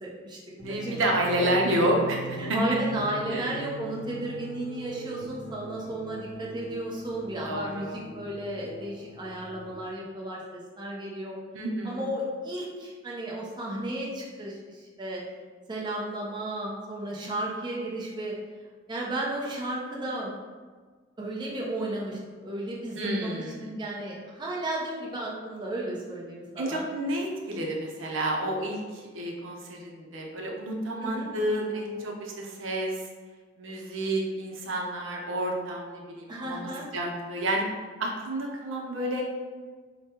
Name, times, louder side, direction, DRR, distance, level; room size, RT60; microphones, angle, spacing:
voice 1, 0.0-0.4 0.7-1.6 1.8-1.9 2.4-11.4 11.8-15.2 15.7-18.3 18.9-20.3 21.2-26.8 31.0-31.3 36.3-36.9, right 1 dB, 25° right, -4 dB, 0.6 m, -34 dB
voice 2, 0.5-2.6 3.3-3.7 7.5-8.0 11.5-12.1 23.0-23.7 26.6-32.9 33.6-37.6 38.0-39.2, right 1 dB, 80° right, -1 dB, 0.6 m, -30 dB
sound 1, 0.6-9.8, right 1 dB, 85° left, 0.7 m, -41 dB
5.1 x 2.2 x 2.9 m, 1.5 s
head